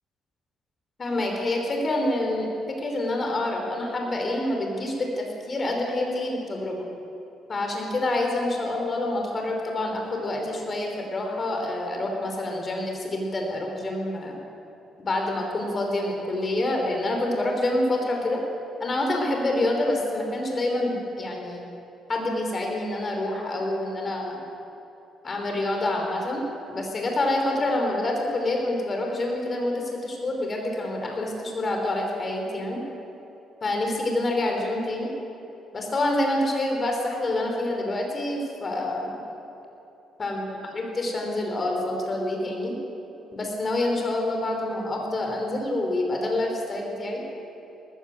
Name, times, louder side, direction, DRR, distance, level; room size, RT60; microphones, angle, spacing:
voice 1, 1.0-6.8 7.5-14.4 15.0-18.4 18.8-21.6 22.1-24.4 25.2-32.8 33.6-35.1 35.7-39.2 40.2-40.4 40.7-42.8 43.3-47.2, left 1 dB, 35° left, 1 dB, 5.3 m, -27 dB
21.0 x 19.0 x 8.0 m, 2.9 s
cardioid pair, 90°, 0 cm